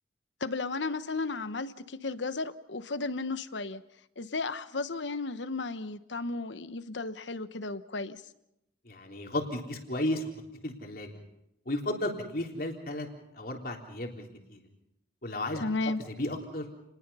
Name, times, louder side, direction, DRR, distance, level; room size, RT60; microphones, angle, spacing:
voice 1, 0.4-3.8 4.2-8.2 15.6-16.0, left 3 dB, 85° left, 12 dB, 1.1 m, -34 dB
voice 2, 8.8-10.3 10.6-11.1 11.7-13.1 13.3-14.6 15.2-15.6 16.1-16.7, left 1 dB, 55° left, 2 dB, 3.6 m, -34 dB
30.0 x 21.0 x 5.6 m, 0.83 s
head